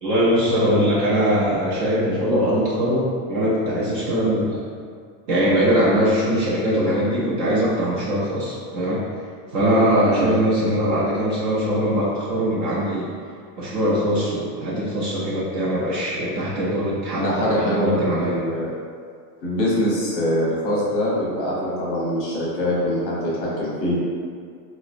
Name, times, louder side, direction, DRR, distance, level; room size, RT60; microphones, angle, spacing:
voice 1, 0.0-4.6 5.3-9.0 9.5-13.1 13.6-18.4, equal, 45° right, -7 dB, 0.4 m, -21 dB
voice 2, 17.2-18.7 19.4-24.0, equal, 30° left, -6 dB, 0.7 m, -23 dB
4.0 x 2.0 x 2.4 m, 2.1 s
supercardioid pair, 170°, 50 cm